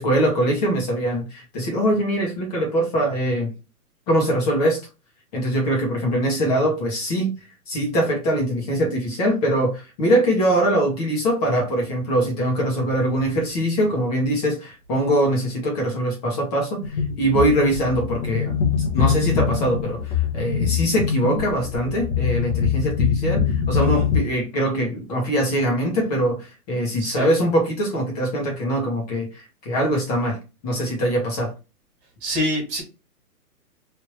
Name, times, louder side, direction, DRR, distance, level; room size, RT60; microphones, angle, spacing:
voice 1, 0.0-3.5 4.1-4.8 5.3-7.3 7.7-18.5 18.9-30.4 30.6-31.5, right 1 dB, 25° left, 1.2 m, -22 dB
sound 1, 16.8-24.2, left 7 dB, 50° left, 1.1 m, -23 dB
voice 2, 32.2-32.8, equal, 15° right, 1.9 m, -26 dB
3.3 x 2.8 x 3.0 m
hypercardioid pair, 160°, 46 cm